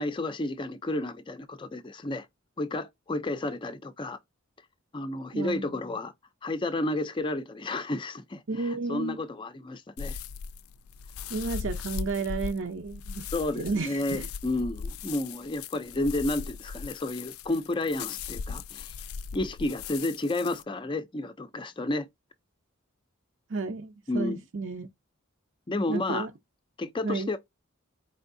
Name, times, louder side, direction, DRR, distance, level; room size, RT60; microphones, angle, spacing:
voice 1, 0.0-2.3 2.6-4.2 4.9-6.1 6.4-10.2 13.3-19.0 19.3-22.1 24.1-24.4 25.7-26.3 26.8-27.4, left 2 dB, 25° left, 0.4 m, -31 dB
voice 2, 8.5-9.2 11.3-13.3 13.6-14.3 23.5-24.9 25.9-26.3 27.0-27.4, right 3 dB, 60° right, 0.6 m, -32 dB
sound 1, 10.0-20.6, left 6 dB, 85° left, 0.4 m, -38 dB
4.5 x 3.3 x 2.6 m
head